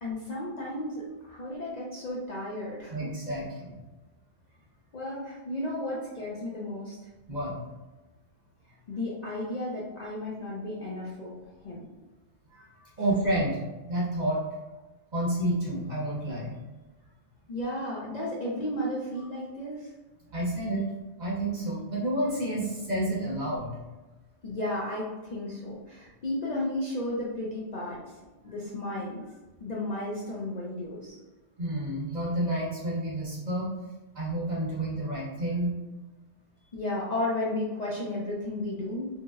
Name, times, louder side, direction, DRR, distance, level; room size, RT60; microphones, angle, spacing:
voice 1, 0.0-3.1 4.9-7.1 8.9-11.3 11.6-11.8 17.5-19.9 24.4-28.2 28.4-29.2 29.6-31.2 36.7-39.1, left 1 dB, 55° left, -5 dB, 0.5 m, -33 dB
voice 2, 2.9-3.7 7.3-7.6 12.5-13.6 13.8-14.5 15.1-16.5 20.3-20.9 21.2-23.8 31.6-33.7 34.1-35.7, right 1 dB, 45° right, -5 dB, 0.7 m, -30 dB
2.9 x 2.7 x 2.3 m, 1.1 s
omnidirectional pair, 1.2 m